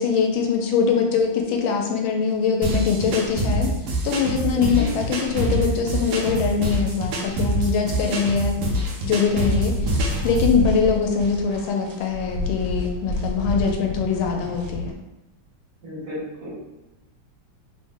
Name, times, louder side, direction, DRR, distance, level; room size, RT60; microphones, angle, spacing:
voice 1, 0.0-3.7 4.0-8.6 9.0-9.7 10.2-14.9, left 6 dB, 85° left, 2 dB, 1.4 m, -22 dB
sound 1, 2.6-10.6, equal, 70° right, 1.1 m, -25 dB
voice 2, 4.5-5.0 15.8-16.6, equal, 55° right, -8 dB, 1.7 m, -33 dB
sound 2, 9.7-14.9, left 2 dB, 85° right, 1.4 m, -29 dB
3.4 x 2.1 x 3.5 m, 0.96 s
omnidirectional pair, 2.2 m